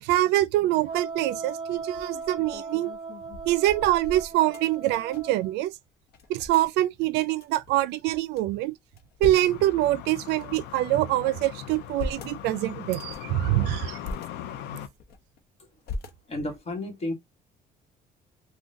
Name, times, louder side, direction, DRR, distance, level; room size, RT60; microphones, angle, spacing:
voice 1, 0.0-2.9 3.5-5.7 6.3-8.7 9.2-14.0, right 15 dB, 85° right, 0.4 m, -25 dB
Wind instrument woodwind instrument, 0.8-5.5, right 4 dB, 30° right, 1.3 m, -38 dB
sound 1, 0.9-1.2 1.7-5.5 5.7-5.8 6.1-6.7 7.4-8.4 8.8-9.6 10.2-11.1 11.6-12.4 12.9-13.3 13.8-14.3 14.7-15.4 15.8-16.6, left 2 dB, 70° left, 0.8 m, -40 dB
sound 2, 9.5-14.9, left 11 dB, 90° left, 0.5 m, -39 dB
voice 2, 16.3-17.1, left 1 dB, 40° left, 1.2 m, -31 dB
3.7 x 2.2 x 2.6 m
cardioid pair, 110°, 17 cm